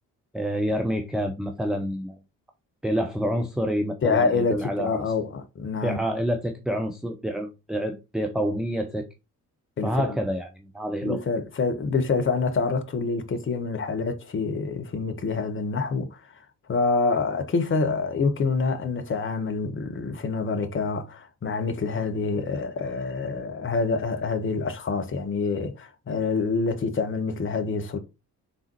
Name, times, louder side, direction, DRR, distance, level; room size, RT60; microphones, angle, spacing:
voice 1, 0.3-2.2 2.8-5.0 5.8-9.1 9.8-11.2, equal, ahead, 0.5 m, -28 dB
voice 2, 4.0-6.0 9.8-10.2 11.0-16.2 16.7-28.0, left 4 dB, 25° left, 0.8 m, -26 dB
4.0 x 3.6 x 2.9 m
figure-of-eight pair, 40°, 45 cm